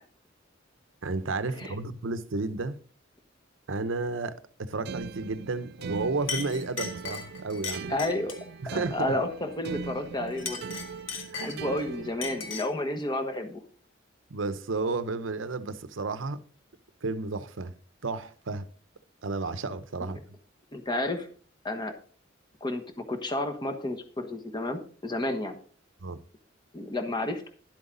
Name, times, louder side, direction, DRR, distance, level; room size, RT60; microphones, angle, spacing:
voice 1, 1.0-2.8 3.7-7.9 8.6-9.1 11.3-11.6 14.3-16.4 17.0-17.7 18.0-18.7 19.2-20.2 26.0-26.2, right 3 dB, 90° right, 0.8 m, -32 dB
sound 1, 4.8-12.5, right 5 dB, 55° right, 0.3 m, -40 dB
Chink clink, 5.8-6.0 6.3-8.5 10.3-11.8 12.2-12.8, left 6 dB, 85° left, 1.5 m, -37 dB
voice 2, 7.9-8.4 8.7-10.6 11.4-13.6 20.7-21.3 21.6-21.9 22.6-25.5 26.7-27.5, left 1 dB, 25° left, 1.3 m, -31 dB
11.0 x 8.1 x 3.9 m
head